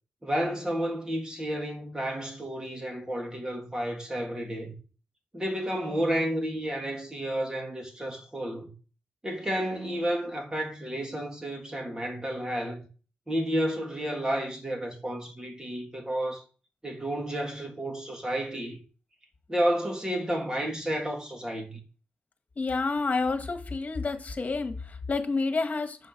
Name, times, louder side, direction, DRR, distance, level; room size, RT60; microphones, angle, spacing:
voice 1, 0.2-4.7 5.3-8.7 9.2-12.8 13.3-16.4 16.8-18.8 19.5-21.8, equal, 20° right, 3.2 m, -31 dB
voice 2, 22.6-26.0, left 3 dB, 45° left, 1.8 m, -29 dB
8.0 x 5.4 x 6.3 m
cardioid pair, 85°, 4 cm